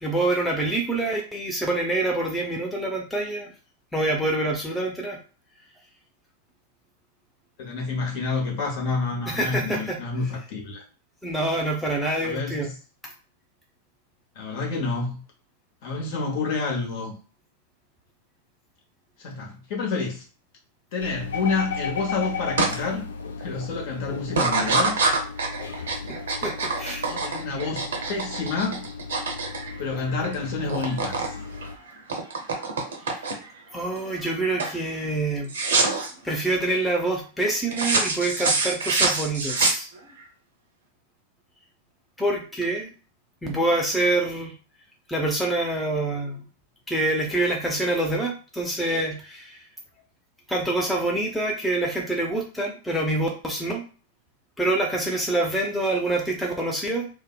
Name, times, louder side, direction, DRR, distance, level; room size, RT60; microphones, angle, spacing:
voice 1, 0.0-3.5 3.9-5.2 9.3-10.0 11.2-12.7 26.1-27.1 33.1-33.3 33.7-35.5 36.2-39.9 42.2-42.9 43.4-44.5 45.1-46.5 46.9-49.6 50.5-53.8 54.6-57.1, right 2 dB, 5° left, -1 dB, 0.5 m, -26 dB
voice 2, 7.6-10.8 12.2-12.7 14.3-15.2 15.8-17.2 19.2-20.2 20.9-23.1 23.4-25.0 27.1-28.9 29.8-31.4, left 4 dB, 50° left, 0 dB, 0.8 m, -29 dB
sound 1, 21.0-31.8, left 5 dB, 70° left, 0.3 m, -35 dB
sound 2, 22.6-22.7 23.2-23.6 24.3-30.3 30.6-31.3 31.6-33.6 34.1-34.3 34.6-34.8 35.5-36.1 37.7-40.2, right 3 dB, 65° right, 0.6 m, -25 dB
2.6 x 2.1 x 2.2 m, 0.37 s
figure-of-eight pair, 90°, 0 cm